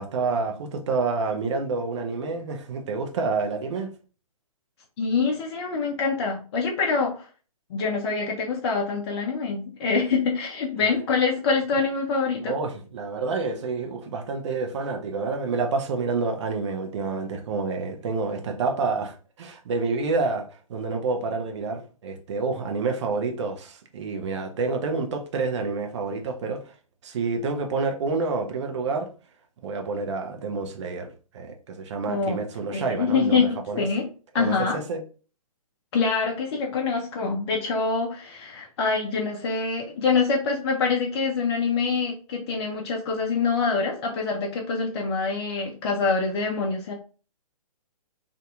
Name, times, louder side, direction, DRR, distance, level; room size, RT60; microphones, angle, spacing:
voice 1, 0.0-3.9 12.5-26.7 27.0-29.1 29.6-33.8 34.4-35.0, right 4 dB, 50° right, 0.6 m, -28 dB
voice 2, 5.0-7.3 7.7-12.5 32.1-32.4 32.7-34.0 34.3-34.8 35.9-46.9, left 4 dB, 45° left, 0.6 m, -25 dB
2.7 x 2.6 x 2.2 m
figure-of-eight pair, 125°, 19 cm